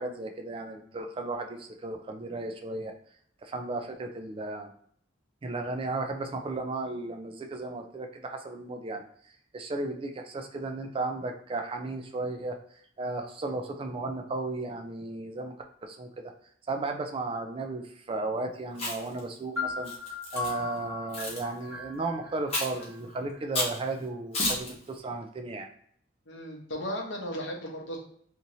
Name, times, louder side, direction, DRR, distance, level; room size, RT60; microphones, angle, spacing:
voice 1, 0.0-2.9 3.4-4.7 5.4-9.1 9.5-12.6 13.0-15.5 15.8-16.1 16.7-19.9 20.3-25.7, right 2 dB, 30° right, 5 dB, 0.3 m, -34 dB
Chewing mastication, 18.7-19.2 19.8-20.5 21.1-21.4 22.5-22.8 23.5-23.8 24.3-24.7, left 2 dB, 35° left, 0.9 m, -31 dB
sound 1, 19.6-23.4, left 4 dB, 15° right, 1.3 m, -38 dB
voice 2, 26.3-28.0, equal, 70° left, 0 dB, 0.8 m, -35 dB
2.9 x 2.7 x 2.6 m, 0.62 s
head